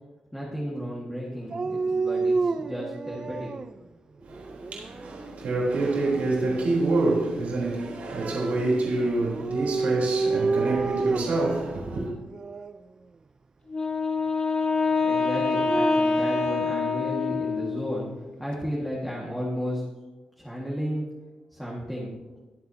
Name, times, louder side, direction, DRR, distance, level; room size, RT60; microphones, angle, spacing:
voice 1, 0.3-3.5 15.0-19.8 20.4-21.2 21.5-22.1, equal, ahead, 1.8 m, -33 dB
Dog, 1.5-3.7 4.3-5.1 9.2-11.5 12.3-12.8 15.3-16.6, right 4 dB, 30° right, 0.3 m, -29 dB
voice 2, 4.2-12.1, right 2 dB, 70° right, 3.8 m, -27 dB
Wind instrument woodwind instrument, 13.7-17.9, left 4 dB, 30° left, 1.2 m, -25 dB
21.5 x 7.8 x 2.8 m
wide cardioid pair, 160°, 3 cm